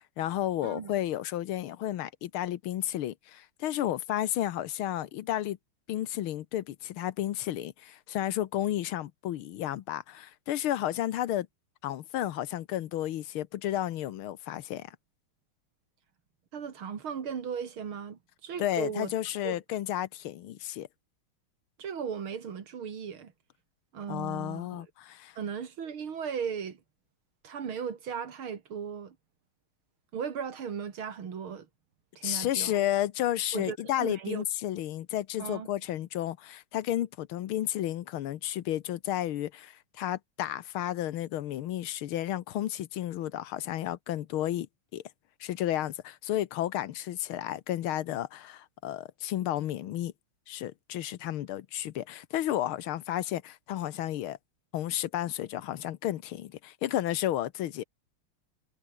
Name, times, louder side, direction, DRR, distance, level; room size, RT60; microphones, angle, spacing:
voice 1, 0.2-5.6 5.9-11.5 11.8-15.0 18.6-20.9 24.1-25.4 32.2-44.7 44.9-45.0 45.4-50.1 50.5-54.4 54.7-57.8, left 12 dB, 80° left, 1.8 m, -32 dB
voice 2, 16.5-19.1 19.4-19.6 21.8-23.3 23.9-24.9 25.4-26.8 27.4-29.2 30.1-31.7 32.2-32.8 33.5-34.4 35.4-35.7, right 7 dB, 80° right, 2.9 m, -37 dB
omnidirectional pair, 2.3 m